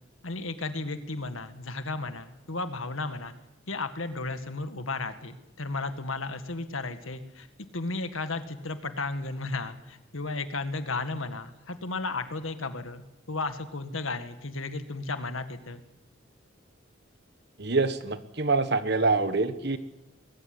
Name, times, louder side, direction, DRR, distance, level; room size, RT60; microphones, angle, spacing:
voice 1, 0.2-3.3 3.7-7.5 7.7-13.0 13.3-15.8, left 3 dB, 80° left, 9 dB, 1.9 m, -34 dB
voice 2, 17.6-19.8, right 3 dB, 55° right, 11 dB, 1.5 m, -25 dB
21.5 x 15.5 x 9.7 m, 0.93 s
head